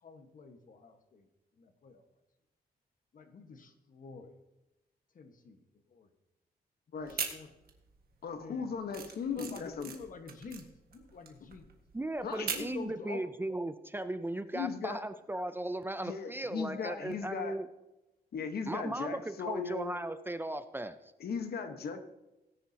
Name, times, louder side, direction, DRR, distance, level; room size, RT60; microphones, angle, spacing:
voice 1, 0.0-1.3 1.6-2.0 3.1-4.4 5.1-5.6 5.9-6.1 6.9-7.5 8.4-8.7 9.2-11.7 12.5-13.2, left 5 dB, 55° left, 6 dB, 1.5 m, -48 dB
sound 1, 7.0-8.0 8.3-12.8, right 6 dB, 65° right, 1.7 m, -40 dB
voice 2, 8.2-9.9 12.2-12.5 14.5-15.0 16.0-17.5 18.3-20.0 21.2-22.0, left 6 dB, 70° left, 7 dB, 1.3 m, -37 dB
voice 3, 11.9-17.7 18.7-21.0, right 1 dB, 15° right, 11 dB, 0.5 m, -37 dB
18.0 x 10.0 x 2.9 m, 0.96 s
wide cardioid pair, 120°, 17 cm